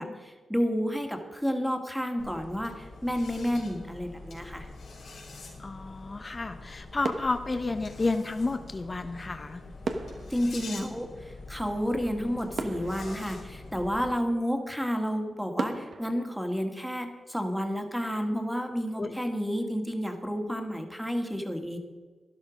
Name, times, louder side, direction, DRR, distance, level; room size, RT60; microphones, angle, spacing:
voice 1, 0.0-4.7 10.3-21.8, equal, ahead, 5 dB, 2.0 m, -31 dB
sound 1, 2.2-14.1, left 3 dB, 85° left, 3.7 m, -45 dB
voice 2, 5.6-9.6 19.0-19.2, left 3 dB, 35° left, 8 dB, 0.8 m, -31 dB
sound 2, 7.0-8.5 9.8-11.8 12.2-12.3 12.6-14.1 14.7-14.8 15.6-17.5 17.8-18.0, right 3 dB, 65° right, 1.2 m, -38 dB
12.0 x 11.0 x 5.2 m, 1.4 s
cardioid pair, 60°, 0 cm